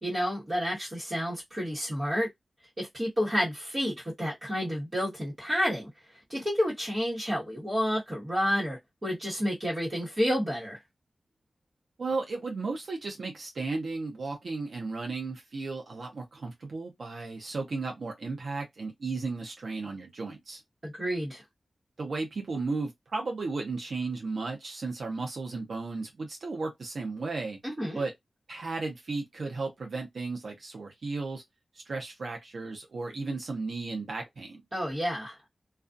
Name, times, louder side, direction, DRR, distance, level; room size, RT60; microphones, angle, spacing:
voice 1, 0.0-2.3 2.8-5.9 6.3-10.8 20.8-21.4 27.6-28.0 34.7-35.4, equal, 25° right, 1.1 m, -30 dB
voice 2, 12.0-20.6 22.0-27.6 27.9-28.1 28.5-31.4 31.9-34.6, right 3 dB, 65° right, 0.6 m, -34 dB
2.4 x 2.3 x 2.5 m
wide cardioid pair, 115°, 0 cm